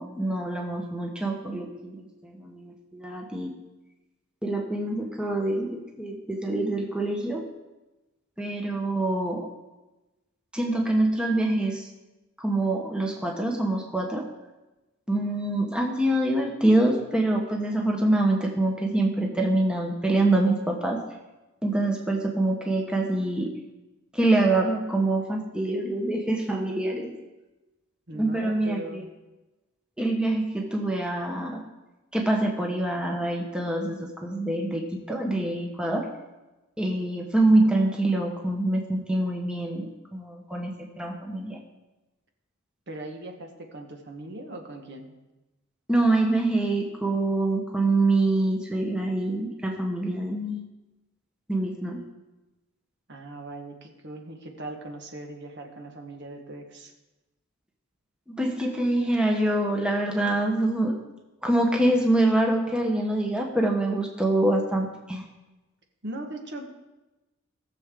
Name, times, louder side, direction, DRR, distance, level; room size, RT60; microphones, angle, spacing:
voice 1, 0.0-3.6 4.4-7.5 8.4-9.5 10.5-11.9 12.4-14.3 15.1-21.0 21.6-23.6 24.1-27.1 28.1-29.0 30.0-31.6 32.1-36.1 36.8-41.6 45.9-50.6 51.5-52.0 58.3-61.0 61.4-65.2, right 2 dB, 5° right, 0 dB, 1.1 m, -25 dB
voice 2, 28.1-29.1 42.9-45.1 53.1-56.9 66.0-66.7, right 1 dB, 55° right, 3 dB, 1.5 m, -39 dB
18.5 x 7.1 x 3.7 m, 1.1 s
head